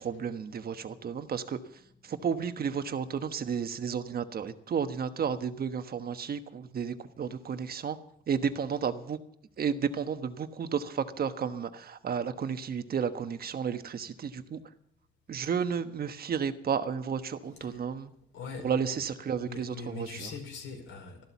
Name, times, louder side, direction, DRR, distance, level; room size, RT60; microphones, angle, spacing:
voice 1, 0.0-1.6 2.0-8.0 8.3-9.2 9.6-14.6 15.3-18.1 18.6-20.3, right 7 dB, 50° right, 1.3 m, -32 dB
voice 2, 17.6-18.0 18.3-18.9 19.4-21.2, left 4 dB, 80° left, 5.0 m, -42 dB
13.5 x 12.5 x 7.2 m
cardioid pair, 90°, 20 cm